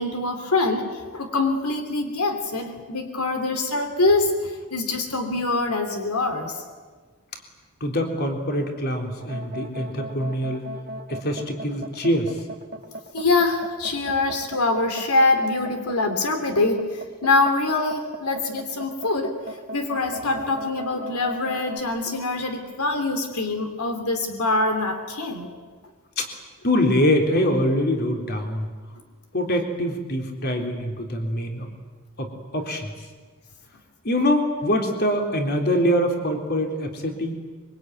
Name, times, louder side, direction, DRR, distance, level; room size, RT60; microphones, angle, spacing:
voice 1, 0.0-6.6 13.1-19.4 19.7-25.5, left 3 dB, 80° left, 6 dB, 3.1 m, -24 dB
voice 2, 7.8-10.7 11.1-12.4 26.2-26.3 26.6-28.7 29.3-31.7 32.2-32.9 34.0-37.3, equal, 45° left, 3 dB, 3.7 m, -24 dB
sound 1, 9.2-21.8, right 1 dB, 45° right, 1.5 m, -37 dB
25.0 x 24.0 x 9.5 m, 1.4 s
head